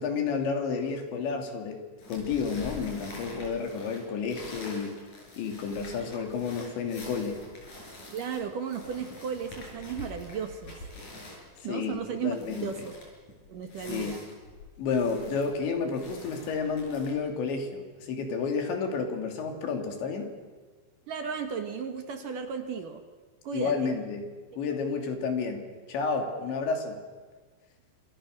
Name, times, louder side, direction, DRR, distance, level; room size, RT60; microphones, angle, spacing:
voice 1, 0.0-1.8 2.1-4.9 5.4-7.4 11.7-12.7 13.9-14.1 14.8-20.3 23.5-24.3 24.6-25.6 25.9-27.0, left 5 dB, 80° left, 4 dB, 5.1 m, -31 dB
sound 1, 2.0-17.1, left 2 dB, 45° left, 7.7 m, -46 dB
voice 2, 8.1-10.8 11.6-13.0 13.5-14.2 21.1-23.0 23.4-23.9, right 6 dB, 60° right, 6 dB, 2.6 m, -35 dB
28.0 x 27.0 x 6.7 m, 1.4 s
omnidirectional pair, 5.1 m